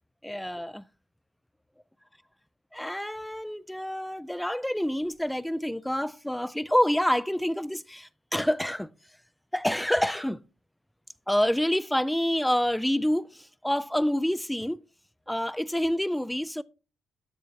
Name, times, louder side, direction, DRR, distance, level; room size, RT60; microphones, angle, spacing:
voice 1, 0.2-0.8 2.7-8.9 9.5-10.4 11.3-14.8 15.3-16.6, equal, 5° left, 0.3 m, -27 dB
13.0 x 7.4 x 2.7 m
cardioid pair, 130°, 0 cm